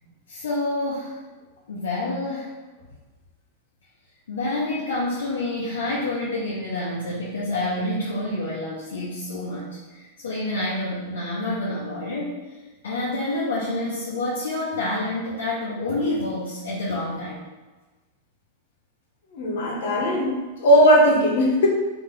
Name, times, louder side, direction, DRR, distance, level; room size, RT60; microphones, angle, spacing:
voice 1, 0.3-1.2 1.7-2.5 4.3-12.4 12.8-17.4, left 2 dB, 85° left, -6 dB, 0.9 m, -28 dB
voice 2, 19.3-21.7, equal, 70° left, -2 dB, 1.2 m, -18 dB
3.3 x 3.0 x 3.8 m, 1.2 s
hypercardioid pair, 125°, 0 cm